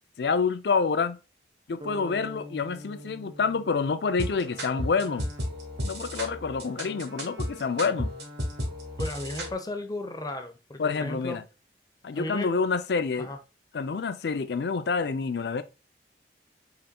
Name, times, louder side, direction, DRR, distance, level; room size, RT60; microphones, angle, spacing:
voice 1, 0.2-1.2 1.7-5.3 5.8-8.1 10.8-11.4 12.0-13.3 13.7-15.6, left 5 dB, 65° left, 0.4 m, -27 dB
sound 1, 1.8-5.7, right 1 dB, 30° right, 0.6 m, -45 dB
sound 2, 4.2-9.5, equal, 65° right, 1.6 m, -34 dB
voice 2, 9.0-11.4 12.1-12.5 13.2-13.4, left 1 dB, 20° left, 0.7 m, -35 dB
5.4 x 4.0 x 2.2 m
head